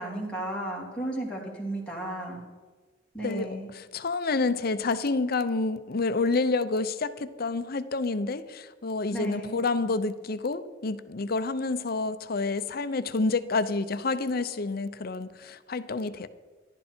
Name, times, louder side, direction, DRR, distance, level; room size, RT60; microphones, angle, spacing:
voice 1, 0.0-2.4 3.1-3.7 9.1-9.6, right 1 dB, 5° left, -4 dB, 3.0 m, -34 dB
voice 2, 3.7-16.3, left 3 dB, 50° left, 12 dB, 0.7 m, -28 dB
14.5 x 11.5 x 4.4 m, 1.4 s
head